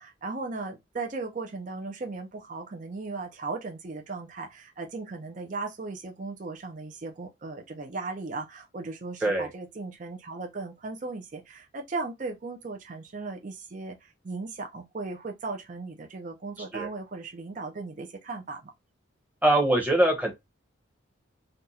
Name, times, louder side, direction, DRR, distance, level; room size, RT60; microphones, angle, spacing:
voice 1, 0.0-18.7, right 3 dB, 40° right, 0.4 m, -37 dB
voice 2, 19.4-20.3, right 1 dB, 10° right, 0.8 m, -22 dB
2.6 x 2.3 x 4.0 m
head